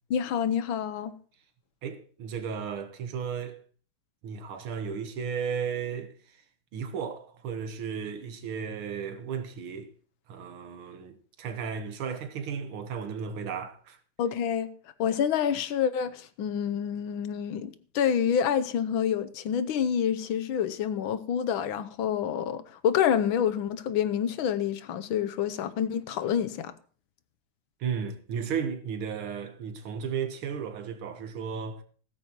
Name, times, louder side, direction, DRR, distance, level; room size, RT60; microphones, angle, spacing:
voice 1, 0.1-1.1 14.2-14.7 15.0-26.7, left 8 dB, 80° left, 1.6 m, -28 dB
voice 2, 1.8-3.6 4.2-6.4 6.7-9.9 10.3-14.0 27.8-31.8, right 7 dB, 90° right, 2.1 m, -34 dB
15.5 x 13.5 x 3.0 m
omnidirectional pair, 2.2 m